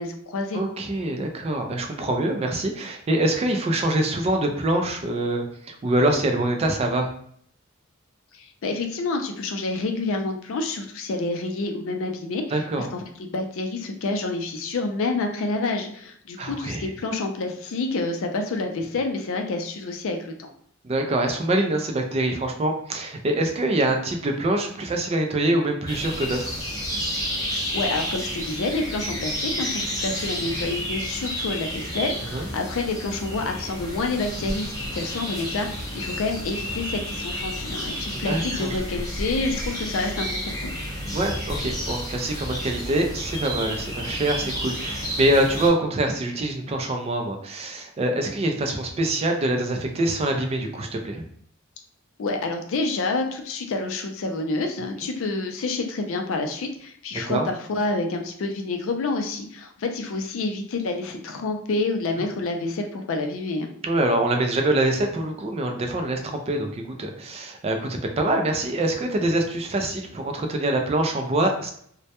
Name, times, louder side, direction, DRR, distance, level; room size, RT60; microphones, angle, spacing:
voice 1, 0.0-0.6 8.3-20.5 27.5-40.7 52.2-63.7, left 3 dB, 65° left, 4 dB, 0.4 m, -28 dB
voice 2, 0.5-7.1 12.5-12.9 16.4-16.8 20.8-26.5 32.3-32.5 38.1-38.8 41.1-51.2 57.1-57.5 63.8-71.7, right 1 dB, 30° right, 4 dB, 0.3 m, -25 dB
sound 1, 25.9-45.7, equal, 15° left, 0.7 m, -31 dB
2.1 x 2.1 x 2.8 m, 0.65 s
head